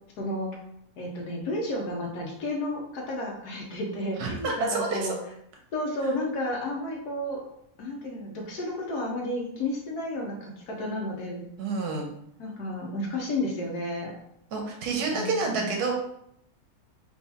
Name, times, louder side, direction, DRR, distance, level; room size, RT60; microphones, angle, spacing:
voice 1, 0.2-0.6 1.0-5.1 5.7-7.4 7.8-11.4 12.4-14.1 15.1-15.7, left 1 dB, 80° left, -1 dB, 1.3 m, -32 dB
voice 2, 4.2-5.2 11.6-12.1 14.5-15.9, right 4 dB, 80° right, 1 dB, 1.2 m, -28 dB
4.7 x 3.0 x 2.8 m, 0.72 s
omnidirectional pair, 1.7 m